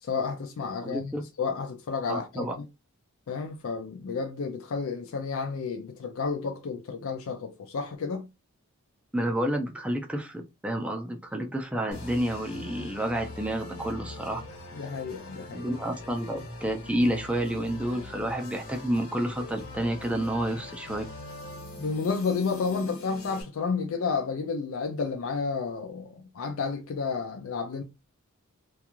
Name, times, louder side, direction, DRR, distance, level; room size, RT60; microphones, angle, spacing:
voice 1, 0.0-2.7 3.3-8.3 14.7-15.7 21.8-27.8, left 5 dB, 65° left, 0.4 m, -31 dB
voice 2, 0.8-1.2 2.1-2.5 9.1-14.4 15.5-21.0, right 1 dB, 5° right, 0.4 m, -30 dB
sound 1, 11.9-23.4, left 2 dB, 85° left, 1.1 m, -42 dB
2.4 x 2.3 x 2.9 m
head